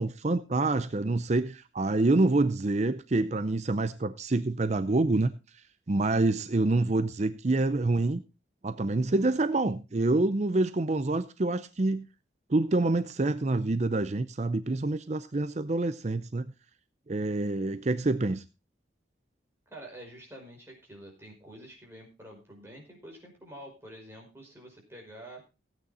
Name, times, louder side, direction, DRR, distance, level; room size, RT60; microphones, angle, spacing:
voice 1, 0.0-5.3 5.9-8.2 8.6-12.1 12.5-16.5 17.1-18.4, right 2 dB, 40° right, 12 dB, 0.6 m, -27 dB
voice 2, 19.7-25.4, right 1 dB, 15° right, -1 dB, 5.3 m, -48 dB
16.0 x 9.1 x 4.1 m, 0.28 s
head